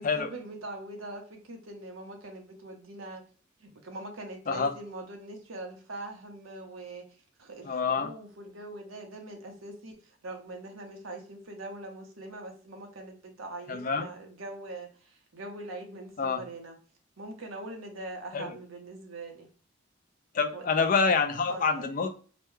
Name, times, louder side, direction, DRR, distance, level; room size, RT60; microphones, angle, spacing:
voice 1, 0.0-3.2 3.6-7.0 7.4-16.8 17.2-19.5 20.5-20.6 21.5-21.9, right 2 dB, 90° right, 3 dB, 0.9 m, -42 dB
voice 2, 7.6-8.1 13.7-14.1 16.2-16.4 18.3-18.5 20.3-22.1, left 5 dB, 40° left, 8 dB, 0.4 m, -27 dB
3.0 x 2.2 x 3.1 m, 0.42 s
head